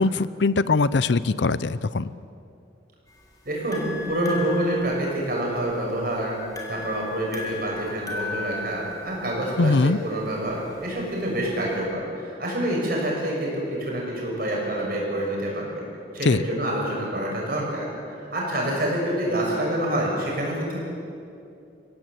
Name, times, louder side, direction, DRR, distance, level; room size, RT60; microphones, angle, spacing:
voice 1, 0.0-2.1 9.6-10.0 16.2-16.4, left 3 dB, 70° left, 17 dB, 0.6 m, -21 dB
sound 1, 3.1-11.8, left 2 dB, 20° left, 3.5 m, -38 dB
voice 2, 3.4-6.3 6.7-15.9 16.1-17.9 18.2-20.8, right 1 dB, 50° right, -2 dB, 6.6 m, -27 dB
24.5 x 16.5 x 8.1 m, 2.5 s
head